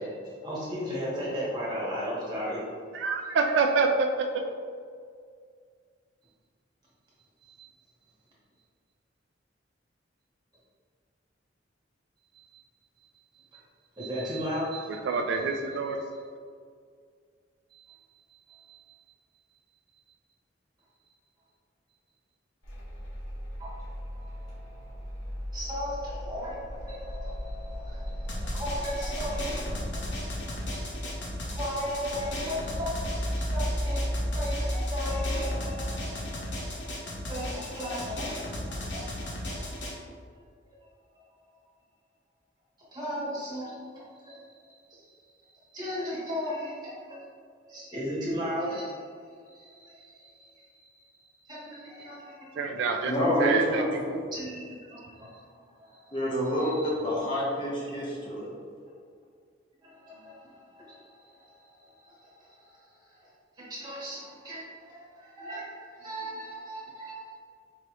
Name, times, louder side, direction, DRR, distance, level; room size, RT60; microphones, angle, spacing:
voice 1, 0.0-2.6 7.4-7.7 12.3-12.6 13.5-13.6 14.0-15.8 16.1-16.2 17.7-19.1 23.6-23.8 24.1-25.0 25.5-39.8 42.9-45.3 45.5-47.2 47.7-49.0 49.5-52.9 54.3-56.2 56.6-56.9 59.8-62.8 63.1-63.3 63.6-67.3, equal, 20° right, -8 dB, 1.3 m, -37 dB
voice 2, 2.9-4.1 15.0-16.0 52.6-53.1 53.4-53.8 54.1-54.2, right 4 dB, 65° right, 3 dB, 0.3 m, -26 dB
sound 1, 22.6-35.5, equal, 85° left, 1.3 m, -35 dB
Drum, 28.3-39.9, left 1 dB, 70° left, 0.9 m, -36 dB
voice 3, 53.0-54.1 56.1-56.7 57.0-58.5, equal, 25° left, -6 dB, 0.8 m, -28 dB
4.8 x 3.0 x 2.9 m, 2.1 s
head